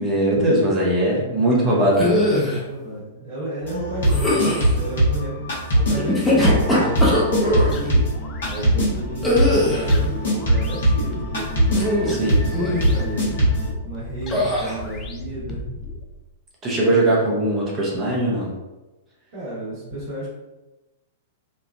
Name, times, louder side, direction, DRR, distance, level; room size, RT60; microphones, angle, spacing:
voice 1, 0.0-2.1 12.0-12.4 16.6-18.5, right 1 dB, 25° right, -4 dB, 0.8 m, -20 dB
voice 2, 1.5-8.0 8.5-11.5 12.1-13.3 13.8-15.6 19.3-20.3, right 1 dB, 55° right, -10 dB, 1.2 m, -32 dB
sound 1, 1.9-2.6 4.1-4.7 6.0-7.7 9.2-9.9 11.7-12.2 12.5-12.9 14.3-14.8, left 1 dB, 10° left, 0.8 m, -21 dB
sound 2, 3.6-13.7, equal, 65° left, 1.0 m, -22 dB
sound 3, 7.3-16.0, left 2 dB, 25° left, 0.4 m, -35 dB
3.1 x 2.3 x 2.2 m, 1.1 s
figure-of-eight pair, 100°, 0 cm